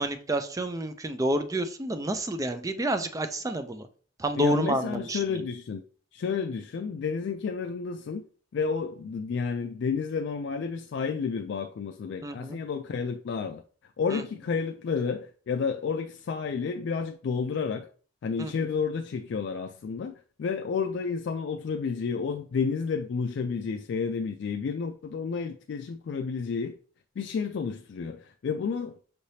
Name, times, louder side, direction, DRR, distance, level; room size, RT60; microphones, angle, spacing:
voice 1, 0.0-3.9 4.2-5.2 12.2-12.6 14.1-14.2 18.4-18.5, right 1 dB, 20° right, 0.4 m, -29 dB
voice 2, 4.4-5.8 6.1-8.2 8.5-13.6 14.0-17.9 18.2-26.8 27.2-29.0, left 5 dB, 65° left, 0.3 m, -31 dB
5.6 x 3.3 x 2.7 m
head